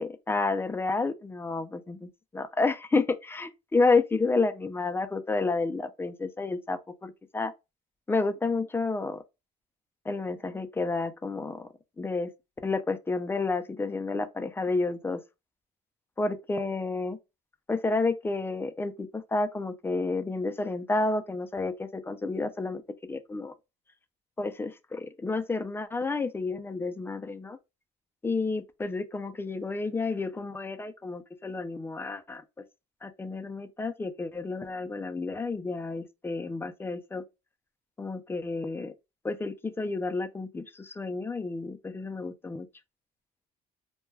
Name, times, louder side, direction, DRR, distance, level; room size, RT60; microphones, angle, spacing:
voice 1, 0.0-7.5 8.1-9.2 10.1-11.7 12.0-12.3 12.6-15.2 16.2-17.2 17.7-22.8 23.1-23.5 24.4-27.6 28.2-32.4 33.0-37.2 38.0-38.9 39.2-42.7, left 3 dB, 15° left, 0.4 m, -30 dB
2.2 x 2.2 x 3.2 m
cardioid pair, 110°, 17 cm